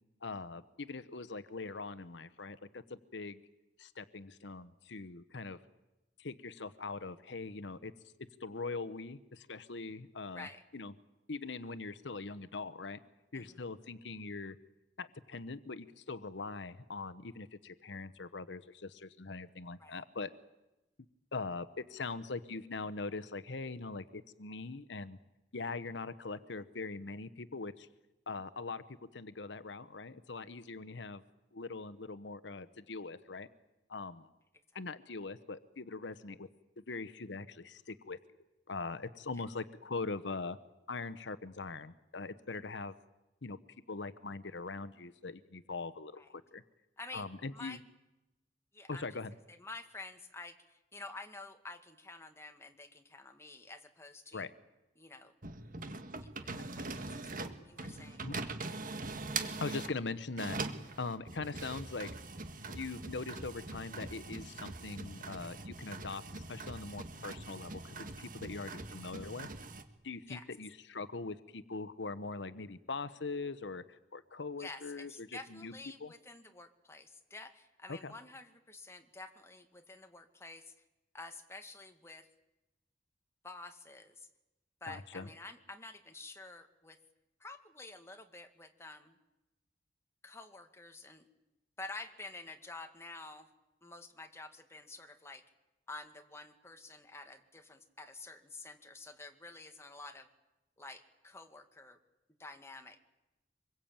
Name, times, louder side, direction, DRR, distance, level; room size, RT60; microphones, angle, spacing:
voice 1, 0.2-3.4 3.8-5.6 6.2-7.9 8.4-10.9 11.3-13.0 13.3-14.6 15.0-20.3 21.3-25.2 25.5-27.9 28.3-28.8 29.1-31.2 31.5-33.5 33.9-34.3 34.7-36.5 36.9-38.2 38.7-40.6 40.9-42.9 43.4-43.6 43.9-46.6 47.1-47.8 48.9-49.3 54.3-54.5 58.2-58.4 59.6-60.6 61.0-62.1 62.7-69.5 70.0-73.8 74.1-75.7 76.0-76.1 77.9-78.1 84.9-85.3, left 3 dB, 80° left, 13 dB, 1.0 m, -42 dB
voice 2, 47.0-47.8 48.7-49.2 49.5-54.5 55.0-55.3 56.2-56.3 56.6-58.3 70.3-70.5 74.6-80.7 81.1-82.3 83.4-84.3 84.8-87.0 87.4-89.1 90.2-91.3 91.8-93.5 93.8-95.4 95.9-100.3 100.8-102.0 102.4-103.0, left 3 dB, 15° left, 6 dB, 2.0 m, -49 dB
sound 1, 55.4-60.0 60.3-69.8, right 3 dB, 50° right, 1.8 m, -42 dB
25.5 x 22.0 x 8.8 m, 0.99 s
head